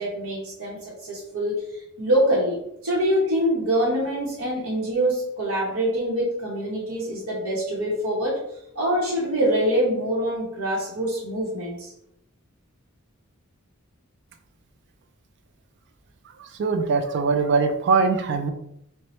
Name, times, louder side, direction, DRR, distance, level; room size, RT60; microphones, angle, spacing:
voice 1, 0.0-8.4 8.7-11.9, equal, 80° right, -5 dB, 0.9 m, -25 dB
voice 2, 16.4-18.5, right 4 dB, 55° right, 6 dB, 0.3 m, -22 dB
3.0 x 2.1 x 4.2 m, 0.76 s
head